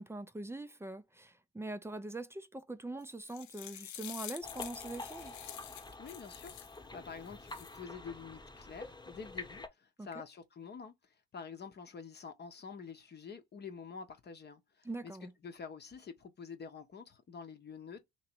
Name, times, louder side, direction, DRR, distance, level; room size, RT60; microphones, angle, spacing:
voice 1, 0.0-5.3 10.0-10.2 14.8-15.3, right 2 dB, 10° right, 0.5 m, -43 dB
sound 1, 3.0-6.8 7.3-7.8, left 12 dB, 65° left, 0.7 m, -47 dB
sound 2, 4.4-9.7, left 2 dB, 15° left, 1.1 m, -48 dB
voice 2, 6.0-10.9 11.3-15.1 15.4-18.0, left 5 dB, 30° left, 0.8 m, -48 dB
3.0 x 2.9 x 4.4 m
hypercardioid pair, 70°, 31 cm